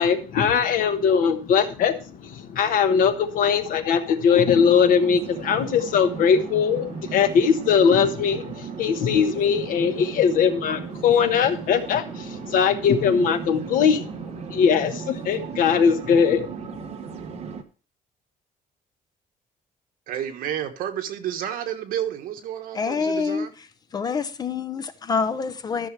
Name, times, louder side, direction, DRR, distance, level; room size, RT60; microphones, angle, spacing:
voice 1, 0.0-16.7 17.5-17.6, left 7 dB, 65° left, 1.1 m, -21 dB
sound 1, 4.5-17.6, right 7 dB, 45° right, 0.9 m, -36 dB
voice 2, 20.1-23.5, right 10 dB, 70° right, 1.3 m, -30 dB
voice 3, 22.7-23.5 23.9-25.9, left 5 dB, 25° left, 0.6 m, -26 dB
13.5 x 6.1 x 3.2 m
cardioid pair, 170°, 15 cm